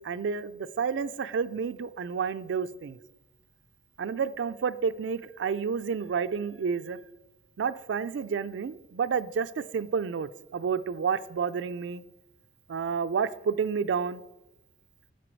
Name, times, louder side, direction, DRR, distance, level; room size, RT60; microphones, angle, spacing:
voice 1, 0.0-3.0 4.0-7.0 7.6-12.0 12.7-14.2, right 6 dB, 80° right, 14 dB, 0.4 m, -30 dB
10.0 x 4.7 x 4.5 m, 0.98 s
head